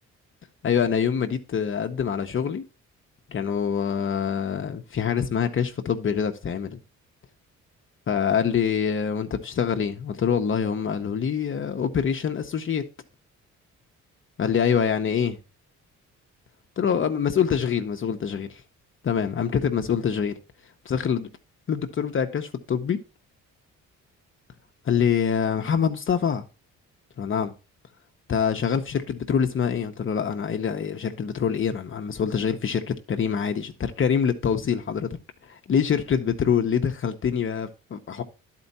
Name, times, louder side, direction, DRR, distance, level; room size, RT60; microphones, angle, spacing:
voice 1, 0.6-2.6 3.3-6.8 8.1-12.8 14.4-15.4 16.8-18.6 19.0-20.4 20.8-21.3 21.7-23.0 24.8-26.4 27.2-27.5 28.3-35.1 35.4-38.2, left 7 dB, 45° left, 0.8 m, -25 dB
10.5 x 4.5 x 4.1 m
cardioid pair, 90°, 30 cm